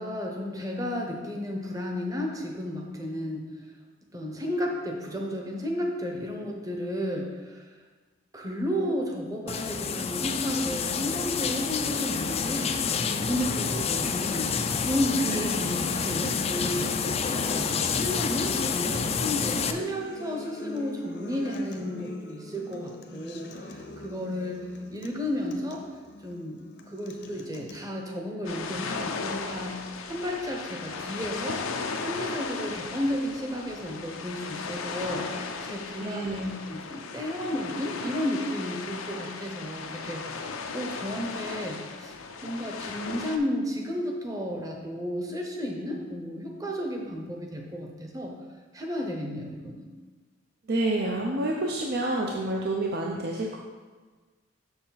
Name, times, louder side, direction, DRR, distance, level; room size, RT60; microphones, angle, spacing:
voice 1, 0.0-3.6 4.1-7.7 8.3-12.8 13.3-25.8 26.2-26.6 26.9-31.6 32.0-48.3 48.7-49.8, equal, 15° right, 1 dB, 0.9 m, -33 dB
sound 1, 9.5-19.7, left 5 dB, 30° left, 0.4 m, -28 dB
Acoustic guitar, 11.8-27.8, left 2 dB, 55° left, 0.7 m, -44 dB
voice 2, 15.2-15.7 36.0-36.6 50.7-53.6, right 2 dB, 50° right, 0 dB, 0.6 m, -29 dB
sound 2, 28.4-43.4, left 4 dB, 90° left, 0.6 m, -36 dB
6.9 x 6.5 x 4.0 m, 1.4 s
head